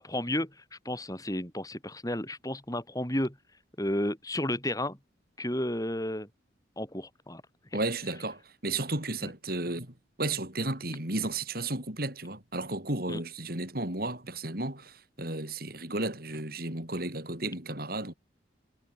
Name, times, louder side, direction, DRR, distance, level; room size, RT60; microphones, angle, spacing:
voice 1, 0.0-3.4 3.8-5.0 5.4-6.3 6.8-7.4 7.7-7.8 9.2-9.3 13.1-13.2, left 1 dB, 20° left, 5.0 m, -32 dB
voice 2, 7.7-18.1, right 2 dB, 55° right, 5.8 m, -33 dB
head